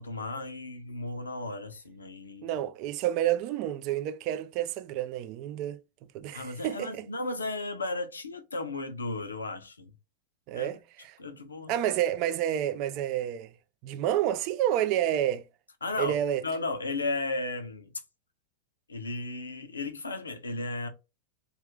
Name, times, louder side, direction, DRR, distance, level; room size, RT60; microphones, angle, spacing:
voice 1, 0.0-2.6 6.3-9.9 10.5-10.7 11.2-11.7 15.8-16.2 16.4-17.9 18.9-20.9, left 2 dB, 75° left, 0.6 m, -34 dB
voice 2, 2.4-5.8 6.1-7.1 10.5-11.2 11.7-13.5 13.8-15.4 16.0-16.4, right 11 dB, 40° right, 0.3 m, -29 dB
2.4 x 2.4 x 3.4 m
figure-of-eight pair, 90°, 0 cm